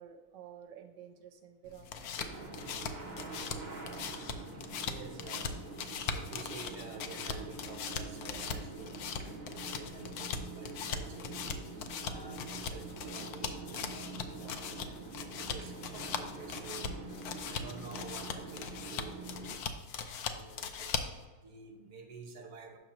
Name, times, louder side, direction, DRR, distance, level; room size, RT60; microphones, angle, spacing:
voice 1, 0.0-2.7, right 9 dB, 85° right, 5 dB, 1.2 m, -52 dB
sound 1, 1.7-21.2, left 6 dB, 70° left, 1.0 m, -40 dB
sound 2, 2.2-19.6, right 3 dB, 35° right, 0.8 m, -46 dB
voice 2, 4.2-4.6 4.8-17.0 17.5-21.1 21.4-22.8, right 4 dB, 55° right, 3 dB, 1.3 m, -50 dB
7.2 x 5.9 x 3.0 m, 1.3 s
omnidirectional pair, 1.9 m